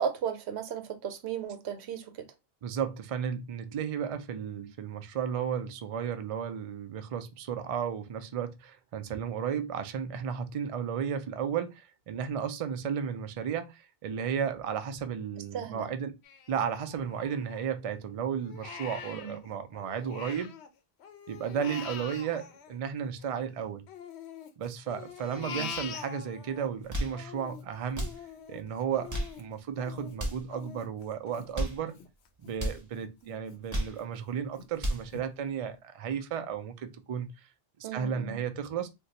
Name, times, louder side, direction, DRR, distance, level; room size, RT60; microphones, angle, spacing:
voice 1, 0.0-2.3 15.5-15.9 19.1-19.4 25.4-25.7 33.2-33.3 37.8-38.4, right 7 dB, 90° right, 0.9 m, -35 dB
voice 2, 2.6-16.2 16.5-20.5 21.3-23.8 24.6-28.1 28.5-32.0 32.4-37.3 37.9-38.9, right 7 dB, 55° right, 0.4 m, -34 dB
Crying sobbing, 16.2-17.9 18.3-20.7 21.0-23.4 23.9-26.7 27.1-32.5 33.0-33.1 33.5-34.1 34.6-34.7 35.1-35.2, left 7 dB, 90° left, 0.9 m, -44 dB
sound 1, 26.7-27.2 27.9-28.2 28.9-29.4 30.1-30.5 31.3-31.8 32.5-32.8 33.5-34.0 34.6-35.1, equal, 20° right, 0.7 m, -33 dB
2.5 x 2.2 x 3.9 m
omnidirectional pair, 1.1 m